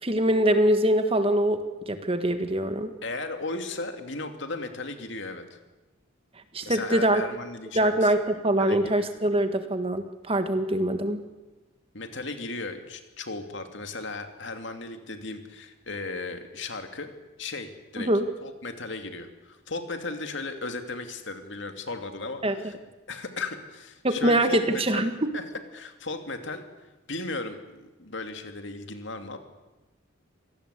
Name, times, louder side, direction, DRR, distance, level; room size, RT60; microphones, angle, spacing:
voice 1, 0.0-2.9 6.5-7.2 7.7-11.2 18.0-18.3 22.4-22.6 24.0-25.3, right 1 dB, 30° right, 8 dB, 1.7 m, -24 dB
voice 2, 3.0-5.6 6.6-8.1 8.6-9.1 11.9-18.1 18.4-22.7 23.1-25.4 25.7-26.6 27.1-29.4, left 3 dB, 60° left, 7 dB, 2.6 m, -36 dB
26.5 x 18.0 x 8.4 m, 1.1 s
head